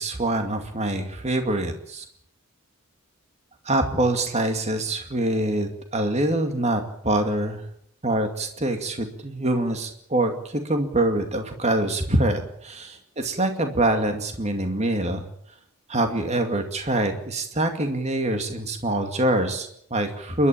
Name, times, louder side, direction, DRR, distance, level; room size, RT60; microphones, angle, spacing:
voice 1, 0.0-2.0 3.6-7.6 8.0-15.2 15.9-20.5, right 1 dB, 30° right, 5 dB, 2.3 m, -25 dB
28.5 x 12.5 x 8.6 m, 0.69 s
head